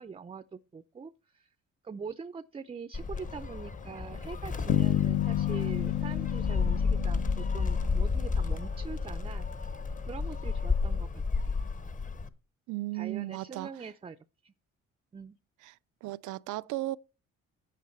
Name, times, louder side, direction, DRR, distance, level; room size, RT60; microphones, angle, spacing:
voice 1, 0.0-1.5 1.8-9.5 10.1-11.1 11.4-11.5 12.9-14.5 15.1-15.4, right 5 dB, 20° right, 0.4 m, -43 dB
Gull seagull, 2.9-12.3, left 4 dB, 25° left, 0.9 m, -32 dB
sound 1, 3.1-11.0, left 9 dB, 75° left, 1.1 m, -51 dB
sound 2, 4.7-8.7, left 13 dB, 55° left, 0.6 m, -30 dB
voice 2, 12.7-13.7 15.6-15.7 16.0-17.0, right 17 dB, 80° right, 0.5 m, -35 dB
9.1 x 8.4 x 4.4 m
cardioid pair, 90°, 30 cm